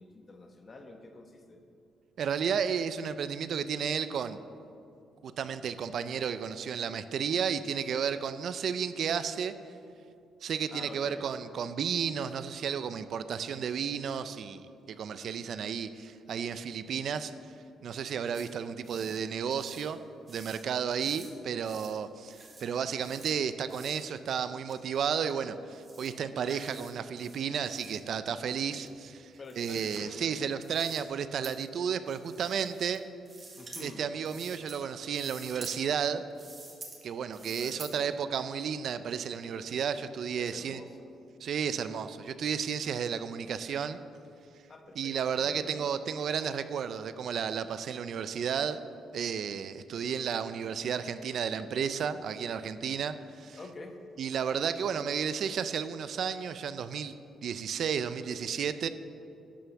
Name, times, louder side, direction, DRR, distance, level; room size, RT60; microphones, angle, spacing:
voice 1, 0.0-1.6 10.7-11.3 18.9-19.2 29.4-30.6 33.5-34.0 37.4-37.9 40.4-41.2 44.7-45.9 53.6-54.0, left 3 dB, 35° left, 5 dB, 1.2 m, -48 dB
voice 2, 2.2-4.4 5.2-9.5 10.4-17.3 17.8-20.0 20.3-33.0 33.8-36.2 37.0-40.8 41.4-44.0 45.0-48.8 49.1-53.6 54.2-57.1 57.4-58.9, right 7 dB, 65° right, 12 dB, 0.4 m, -32 dB
sound 1, 18.3-18.5 18.8-19.2 19.5-19.9 20.3-20.6 21.0-21.3 21.6-21.9 22.2-22.7 23.0-23.3 23.7-24.0 24.7-24.8 25.2-25.3 25.7-26.1 26.4-26.9 27.2-28.0 28.8-30.0 30.6-31.0 31.4-31.5 32.1-33.0 33.3-33.9 34.3-34.8 35.1-35.8 36.3-37.0 37.3-37.9, right 3 dB, 35° right, 2.1 m, -49 dB
11.5 x 5.6 x 6.9 m, 2.6 s
cardioid pair, 90°, 0 cm